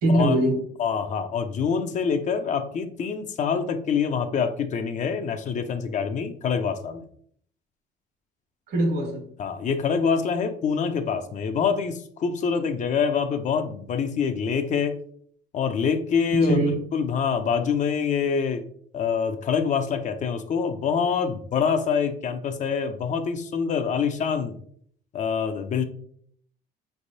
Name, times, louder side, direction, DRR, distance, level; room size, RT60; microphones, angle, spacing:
voice 1, 0.0-0.7 8.7-9.3 16.3-16.8, right 1 dB, 65° right, 1.3 m, -22 dB
voice 2, 0.8-7.0 9.4-15.0 15.5-16.6 16.9-18.7 18.9-24.6 25.1-25.8, left 6 dB, 45° left, 0.5 m, -25 dB
5.1 x 3.3 x 2.6 m
cardioid pair, 110°, 17 cm